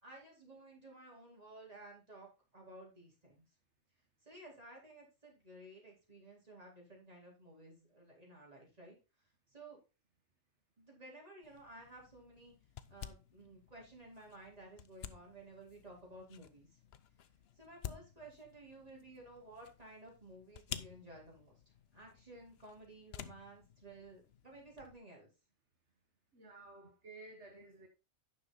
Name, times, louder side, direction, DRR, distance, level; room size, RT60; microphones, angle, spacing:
voice 1, 0.0-2.3 2.5-3.4 4.2-9.0 9.5-9.8 10.8-12.6 12.9-16.7 17.6-21.6 21.9-25.3, right 2 dB, 35° right, 3.9 m, -55 dB
sound 1, 11.4-25.0, left 9 dB, 65° left, 0.9 m, -52 dB
voice 2, 26.3-27.9, right 2 dB, 75° right, 1.7 m, -54 dB
10.0 x 6.1 x 4.0 m
omnidirectional pair, 1.2 m